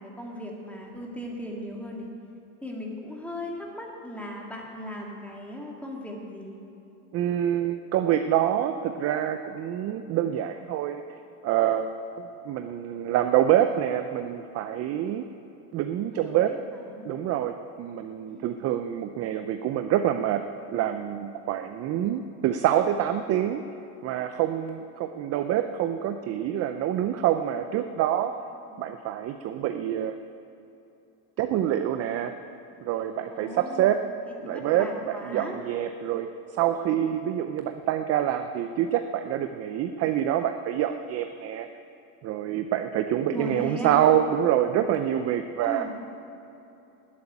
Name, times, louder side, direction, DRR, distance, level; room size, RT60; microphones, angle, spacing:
voice 1, 0.0-2.1 2.6-6.6 16.1-17.1 18.3-18.6 28.6-28.8 33.3-34.0 34.4-35.6 43.3-44.0 45.6-45.9, equal, 5° left, -1 dB, 2.2 m, -37 dB
voice 2, 7.1-11.0 11.4-15.2 15.7-16.5 17.0-20.4 20.7-23.6 24.0-28.3 28.8-30.2 31.4-32.3 32.8-34.0 34.4-41.7 42.2-45.9, right 11 dB, 35° right, 8 dB, 0.5 m, -26 dB
11.5 x 8.4 x 9.9 m, 2.8 s
supercardioid pair, 130°, 47 cm